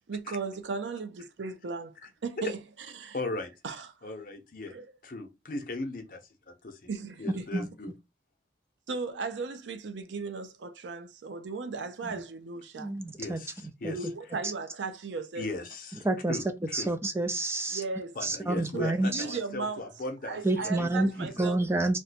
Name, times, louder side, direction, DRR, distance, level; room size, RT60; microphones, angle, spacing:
voice 1, 0.1-1.9 2.2-2.6 3.0-3.2 3.6-3.9 4.7-4.9 6.9-7.6 8.9-12.9 13.9-15.5 17.7-18.2 18.7-19.9 20.2-21.6, right 4 dB, 90° right, 0.5 m, -36 dB
voice 2, 3.1-3.5 4.0-4.7 5.0-6.2 6.6-6.9 7.2-7.9 13.2-14.1 15.3-16.9 18.1-21.5, left 2 dB, 50° left, 0.7 m, -38 dB
voice 3, 12.8-13.4 13.8-13.9 16.0-16.4 16.7-17.8 18.2-19.2 20.4-22.0, right 2 dB, 15° right, 0.4 m, -28 dB
2.7 x 2.2 x 4.1 m
head